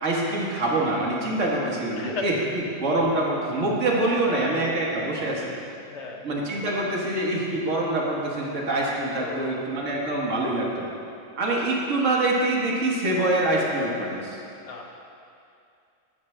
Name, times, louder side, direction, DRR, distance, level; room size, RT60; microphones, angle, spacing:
voice 1, 0.0-5.5 6.2-10.8 11.4-14.4, right 2 dB, 65° right, -3 dB, 1.6 m, -25 dB
voice 2, 1.4-2.3 4.2-4.6 5.9-6.2 9.2-9.7 14.7-14.9, left 4 dB, 60° left, 1 dB, 1.0 m, -36 dB
13.0 x 6.0 x 3.3 m, 2.5 s
omnidirectional pair, 1.4 m